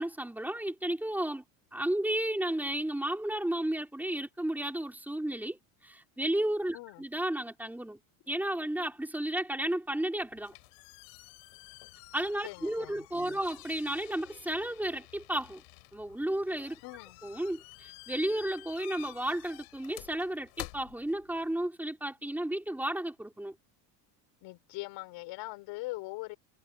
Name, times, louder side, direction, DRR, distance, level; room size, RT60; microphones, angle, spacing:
voice 1, 0.0-1.4 1.7-5.6 5.8-8.0 8.3-10.5 12.1-15.6 15.9-16.8 17.2-23.6, right 1 dB, 5° right, 5.7 m, -33 dB
sound 1, 10.2-21.6, left 33 dB, 85° left, 7.8 m, -50 dB
voice 2, 12.4-13.4 16.8-17.2 24.4-26.4, left 22 dB, 65° left, 5.0 m, -42 dB
cardioid pair, 155°, 45 cm